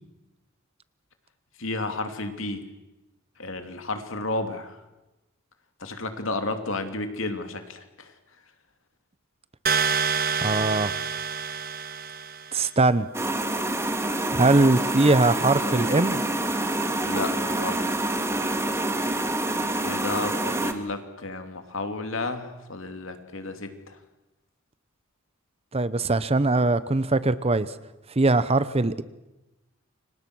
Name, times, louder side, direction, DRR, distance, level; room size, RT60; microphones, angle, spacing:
voice 1, 1.6-2.6 3.4-4.8 5.8-8.1 17.0-18.2 19.8-24.0, left 2 dB, 65° left, 6 dB, 2.9 m, -32 dB
sound 1, 9.7-12.6, right 6 dB, 45° right, 1.5 m, -27 dB
voice 2, 10.4-10.9 12.5-13.1 14.3-16.2 25.7-27.7 28.2-29.0, right 2 dB, 30° right, 15 dB, 0.8 m, -21 dB
sound 2, 13.1-20.7, right 1 dB, 15° right, 1.8 m, -27 dB
29.5 x 25.5 x 6.3 m, 1.0 s
head